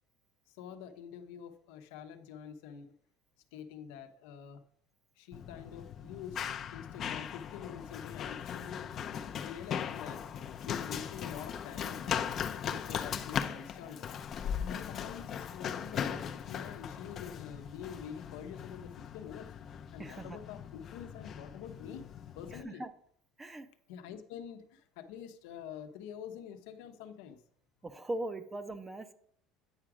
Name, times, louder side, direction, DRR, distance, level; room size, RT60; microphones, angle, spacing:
voice 1, 0.5-2.9 3.5-4.6 5.2-6.4 6.7-10.3 10.6-12.2 12.6-14.1 14.6-19.5 19.9-22.8 23.9-27.4, left 8 dB, 85° left, 7 dB, 0.8 m, -46 dB
Run, 5.3-22.6, left 8 dB, 35° left, 0.5 m, -39 dB
voice 2, 20.0-20.4 22.5-22.9 23.4-23.7 27.8-29.1, right 1 dB, 15° right, 11 dB, 0.5 m, -40 dB
8.9 x 4.8 x 4.9 m, 0.64 s
cardioid pair, 150°, 0 cm